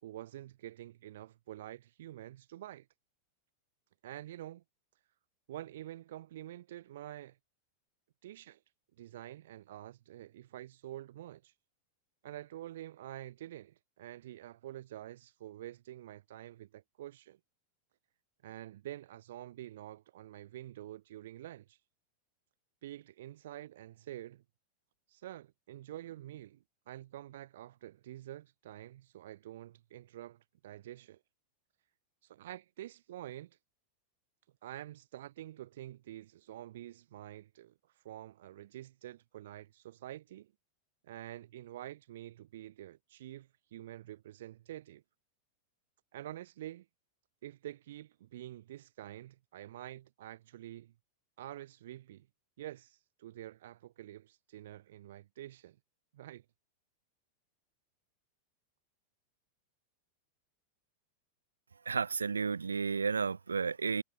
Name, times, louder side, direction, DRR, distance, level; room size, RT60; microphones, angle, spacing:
voice 1, 0.0-2.9 4.0-4.6 5.5-7.4 8.2-8.6 9.0-11.5 12.2-17.4 18.4-21.8 22.8-24.4 25.1-31.2 32.2-33.6 34.6-40.5 41.0-45.0 46.1-46.9 47.4-50.9 51.4-52.3 52.6-55.8 56.1-56.4, right 13 dB, 55° right, 2.8 m, -47 dB
voice 2, 61.9-64.0, right 5 dB, 75° right, 0.6 m, -32 dB
figure-of-eight pair, 90°, 0 cm